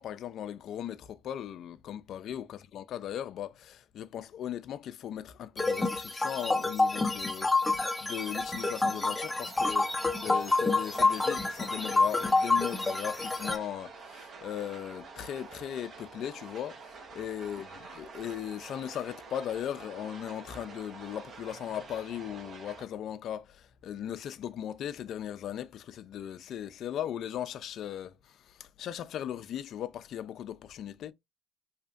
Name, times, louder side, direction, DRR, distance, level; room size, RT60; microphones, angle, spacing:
voice 1, 0.0-7.5 8.0-9.9 10.2-28.1 28.6-31.1, left 10 dB, 65° left, 0.3 m, -38 dB
sound 1, 5.6-13.6, left 3 dB, 15° left, 0.5 m, -28 dB
sound 2, 7.8-22.8, right 4 dB, 50° right, 0.9 m, -48 dB
2.8 x 2.5 x 2.3 m
supercardioid pair, 75°, 0 cm